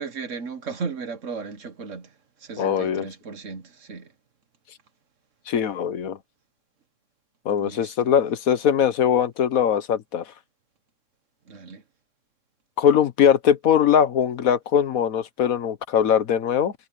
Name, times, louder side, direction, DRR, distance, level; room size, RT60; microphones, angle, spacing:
voice 1, 0.0-4.1 7.6-8.2 11.5-11.8, right 5 dB, 65° right, 1.7 m, -36 dB
voice 2, 2.6-3.1 5.5-6.2 7.4-10.2 12.8-16.7, left 8 dB, 85° left, 1.5 m, -21 dB
omnidirectional pair, 1.4 m